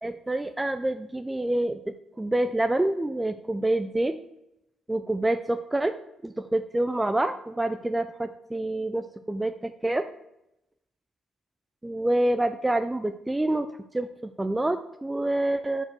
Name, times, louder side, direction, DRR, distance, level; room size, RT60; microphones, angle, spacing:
voice 1, 0.0-1.8 2.2-4.2 4.9-5.9 6.2-10.1 11.8-13.7 13.9-15.8, right 1 dB, 10° right, 9 dB, 0.3 m, -27 dB
6.4 x 4.9 x 4.4 m, 0.85 s
cardioid pair, 90°, 0 cm